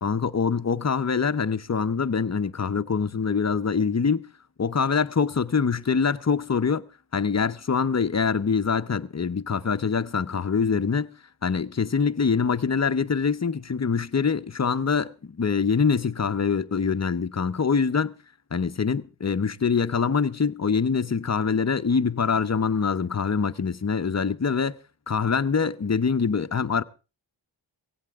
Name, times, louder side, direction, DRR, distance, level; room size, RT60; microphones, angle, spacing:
voice 1, 0.0-4.2 4.6-6.8 7.1-11.1 11.4-18.1 18.5-24.8 25.1-26.8, left 5 dB, 35° left, 0.8 m, -24 dB
17.5 x 16.5 x 3.6 m
wide cardioid pair, 85°, 44 cm